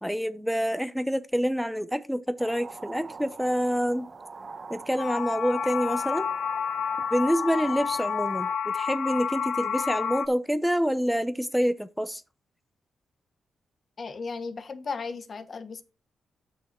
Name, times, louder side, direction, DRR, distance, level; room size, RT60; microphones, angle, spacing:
voice 1, 0.0-4.1 4.7-6.2 7.1-12.2, equal, ahead, 0.8 m, -27 dB
sound 1, 2.4-8.6, right 4 dB, 40° right, 1.4 m, -44 dB
sound 2, 5.0-10.3, left 7 dB, 75° left, 0.6 m, -29 dB
voice 2, 14.0-15.8, left 4 dB, 50° left, 1.1 m, -35 dB
8.7 x 6.2 x 4.4 m
cardioid pair, 70°, 0 cm